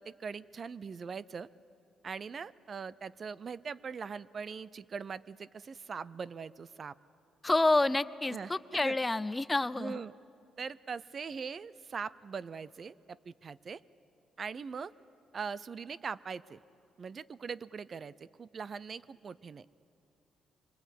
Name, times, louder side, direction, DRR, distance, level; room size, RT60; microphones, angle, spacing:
voice 1, 0.0-1.5 2.0-6.9 8.3-8.5 8.8-8.9 9.8-10.1 10.6-13.8 14.4-14.9 15.3-16.6 17.0-19.7, right 5 dB, 45° right, 18 dB, 0.5 m, -41 dB
voice 2, 7.4-10.0, left 2 dB, 15° left, 16 dB, 0.6 m, -28 dB
25.0 x 24.5 x 8.3 m, 2.6 s
cardioid pair, 90°, 0 cm